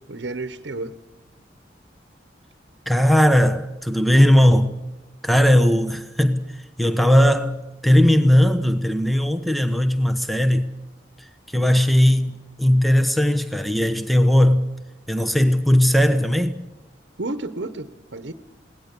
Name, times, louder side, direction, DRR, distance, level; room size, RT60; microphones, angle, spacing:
voice 1, 0.1-1.0 17.2-18.3, right 2 dB, 70° right, 1.0 m, -31 dB
voice 2, 2.9-4.7 5.2-10.7 11.5-14.6 15.1-16.6, equal, ahead, 0.9 m, -18 dB
21.0 x 18.0 x 8.4 m
head